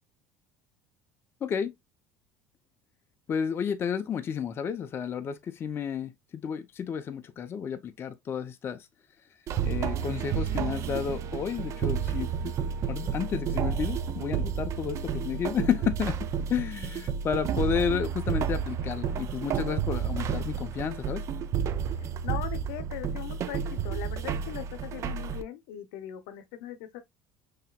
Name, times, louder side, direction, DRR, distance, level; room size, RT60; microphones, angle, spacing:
voice 1, 1.4-1.7 3.3-6.1 6.4-8.9 9.6-12.5 12.9-16.2 16.5-21.2, left 7 dB, 35° left, 0.5 m, -31 dB
sound 1, 9.5-25.4, right 7 dB, 45° right, 0.4 m, -31 dB
voice 2, 22.2-27.0, left 12 dB, 80° left, 0.7 m, -39 dB
5.6 x 2.8 x 2.2 m
supercardioid pair, 105°, 7 cm